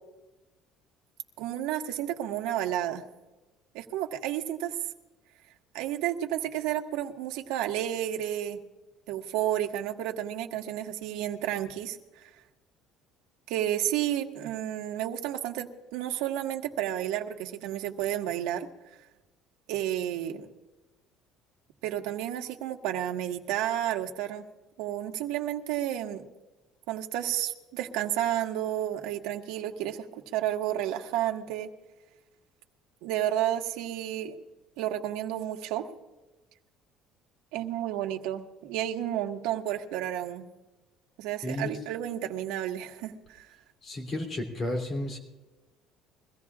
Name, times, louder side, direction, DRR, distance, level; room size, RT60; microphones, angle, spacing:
voice 1, 1.4-3.0 3.7-4.8 5.7-8.6 9.1-12.3 13.5-18.7 19.7-20.5 21.8-24.4 24.8-26.2 26.9-31.7 33.0-34.4 34.8-35.8 37.5-40.5 41.2-43.5, right 12 dB, 85° right, 4 dB, 1.5 m, -31 dB
voice 2, 41.4-41.8 43.8-45.2, left 1 dB, 25° left, 2 dB, 2.9 m, -32 dB
23.5 x 16.5 x 2.4 m, 1.1 s
cardioid pair, 170°, 0 cm